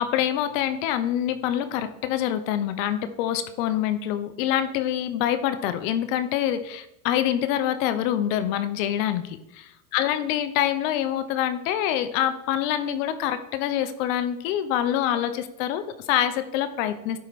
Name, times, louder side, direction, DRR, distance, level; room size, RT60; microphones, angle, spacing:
voice 1, 0.0-17.2, left 11 dB, 70° left, 12 dB, 0.9 m, -26 dB
11.5 x 4.5 x 4.2 m, 0.86 s
supercardioid pair, 110°, 41 cm